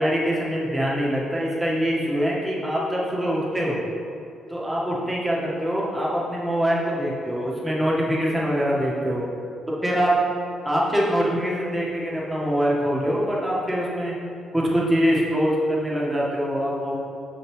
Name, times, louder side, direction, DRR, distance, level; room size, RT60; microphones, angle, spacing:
voice 1, 0.0-3.8 4.5-9.3 9.8-10.1 10.7-14.1 14.5-17.0, equal, 10° right, -5 dB, 1.7 m, -24 dB
6.8 x 6.3 x 3.3 m, 2.6 s
cardioid pair, 90°, 0 cm